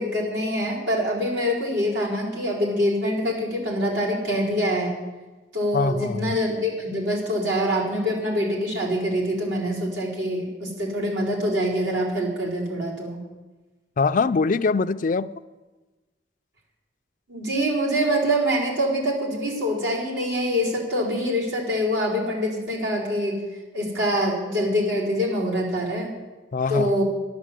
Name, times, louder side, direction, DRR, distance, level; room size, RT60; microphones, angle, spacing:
voice 1, 0.0-4.9 5.5-13.2 17.3-23.4 23.7-26.1 26.7-27.0, equal, 80° right, -5 dB, 4.6 m, -25 dB
voice 2, 5.7-6.3 14.0-15.3 26.5-26.9, left 4 dB, 45° left, 12 dB, 0.4 m, -23 dB
11.0 x 11.0 x 7.6 m, 1.2 s
head